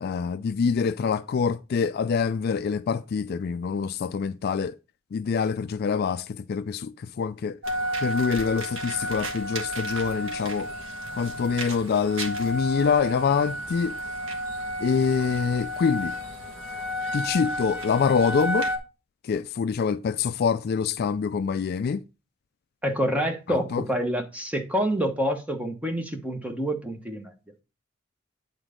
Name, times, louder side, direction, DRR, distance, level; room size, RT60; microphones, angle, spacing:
voice 1, 0.0-4.7 5.1-7.6 8.0-10.7 11.2-13.9 14.8-16.1 17.1-18.7 19.3-22.0 23.5-23.8, left 6 dB, 50° left, 0.3 m, -25 dB
sound 1, 7.6-18.8, equal, 70° right, 1.4 m, -32 dB
voice 2, 22.8-27.3, equal, 5° right, 1.1 m, -27 dB
9.1 x 3.9 x 5.0 m
head